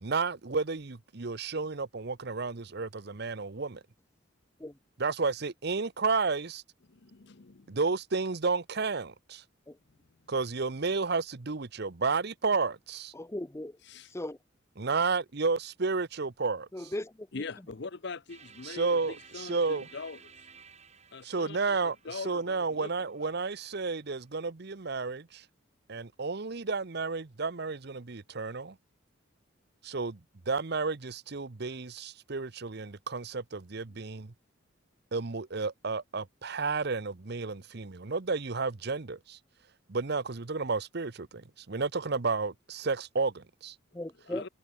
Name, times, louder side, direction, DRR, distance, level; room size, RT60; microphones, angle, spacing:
voice 1, 0.0-3.8 5.0-6.6 7.7-9.4 10.3-13.1 14.8-16.9 18.6-19.9 21.2-25.4 25.9-28.8 29.8-30.2 30.5-34.3 35.1-39.4 39.9-43.7, right 4 dB, 55° right, 0.9 m, -32 dB
voice 2, 6.9-7.7 13.8-14.1 17.3-20.2 21.1-23.3 44.2-44.5, left 4 dB, 60° left, 0.8 m, -42 dB
voice 3, 13.1-13.7 14.1-14.4 16.7-17.3 43.9-44.5, left 1 dB, 15° left, 0.6 m, -37 dB
sound 1, 18.3-24.2, right 6 dB, 35° right, 3.9 m, -55 dB
head